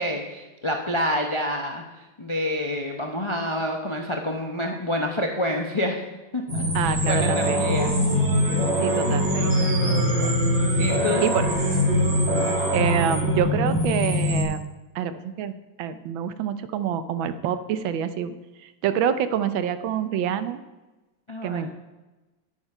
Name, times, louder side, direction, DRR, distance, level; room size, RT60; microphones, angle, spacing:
voice 1, 0.0-1.8 2.2-6.0 6.3-7.9 10.8-11.3 21.3-21.7, left 1 dB, 45° left, 2 dB, 0.3 m, -28 dB
sound 1, 6.5-14.4, equal, 65° right, 3.2 m, -22 dB
voice 2, 6.7-7.7 8.8-10.3 11.2-11.5 12.7-14.6 14.9-18.3 18.6-20.6 21.4-21.7, right 8 dB, 85° right, 12 dB, 1.5 m, -27 dB
10.0 x 8.7 x 5.5 m, 1.1 s
omnidirectional pair, 2.1 m